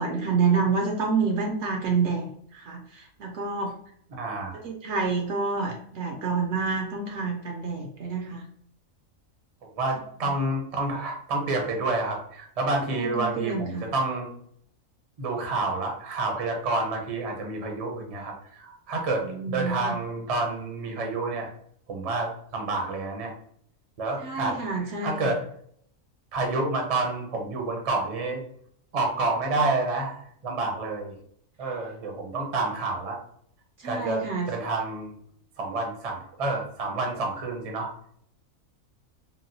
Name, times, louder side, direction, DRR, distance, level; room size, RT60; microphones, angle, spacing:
voice 1, 0.0-2.3 2.5-3.7 4.6-8.4 10.2-10.3 12.9-13.9 19.2-20.0 24.2-25.3 33.8-34.5, right 4 dB, 65° right, 1 dB, 0.8 m, -28 dB
voice 2, 4.1-4.5 9.7-14.3 15.2-21.5 21.9-23.3 24.0-25.4 26.3-28.4 28.9-31.2 31.6-33.2 33.8-35.1 35.6-37.9, right 2 dB, 40° right, 1 dB, 0.6 m, -29 dB
3.8 x 2.2 x 2.6 m, 0.65 s
omnidirectional pair, 1.4 m